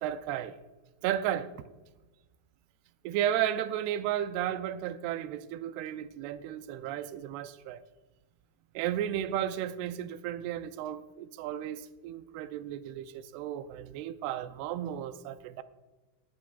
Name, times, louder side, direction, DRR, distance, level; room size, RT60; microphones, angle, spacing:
voice 1, 0.0-0.6 1.0-1.5 3.0-7.8 8.8-15.6, right 11 dB, 85° right, 2.5 m, -33 dB
17.5 x 12.5 x 2.4 m
omnidirectional pair, 5.0 m